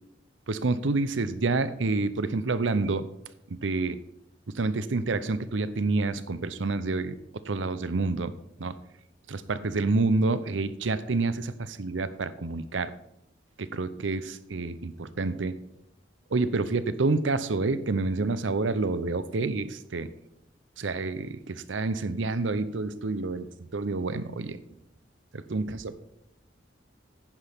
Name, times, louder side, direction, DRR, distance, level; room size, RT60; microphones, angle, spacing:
voice 1, 0.5-3.1 3.5-4.0 4.5-7.2 7.5-8.3 8.6-8.7 9.3-12.9 13.6-15.5 16.3-20.1 20.8-23.5 23.7-24.6 25.3-26.0, right 3 dB, 85° right, 14 dB, 0.7 m, -28 dB
10.5 x 9.9 x 3.6 m, 0.78 s
head